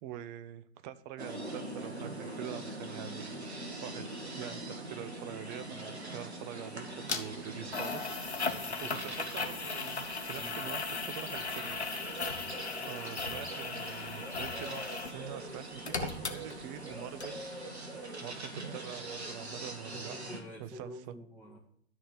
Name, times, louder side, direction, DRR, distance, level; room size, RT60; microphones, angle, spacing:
voice 1, 0.0-8.2 8.8-11.9 12.8-17.5 18.2-20.2 20.6-21.1, right 11 dB, 45° right, 14 dB, 0.9 m, -45 dB
sound 1, 1.2-20.4, right 2 dB, 80° right, 1.7 m, -43 dB
sound 2, 7.1-7.2 7.7-15.2 15.5-16.9 17.2-17.3, left 4 dB, 85° left, 1.1 m, -37 dB
voice 2, 8.4-9.1 10.4-10.6 19.9-21.6, equal, 10° right, -3 dB, 1.8 m, -48 dB
12.5 x 4.3 x 7.9 m, 0.68 s
figure-of-eight pair, 90°, 32 cm